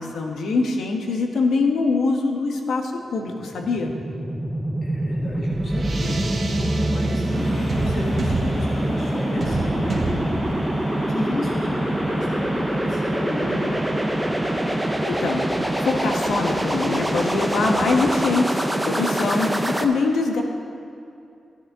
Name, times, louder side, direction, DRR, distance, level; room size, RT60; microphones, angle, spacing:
voice 1, 0.0-3.9 14.7-15.4 15.8-19.5 19.8-20.4, left 3 dB, 75° left, 2 dB, 1.2 m, -23 dB
sound 1, 3.3-19.8, right 1 dB, 5° right, 0.5 m, -25 dB
sound 2, 4.7-15.4, right 2 dB, 35° right, 1.0 m, -31 dB
voice 2, 4.8-14.1, left 1 dB, 45° left, -3 dB, 1.5 m, -33 dB
sound 3, 7.3-18.3, equal, 20° left, 2.4 m, -37 dB
14.0 x 9.9 x 3.6 m, 2.5 s
wide cardioid pair, 175°, 0 cm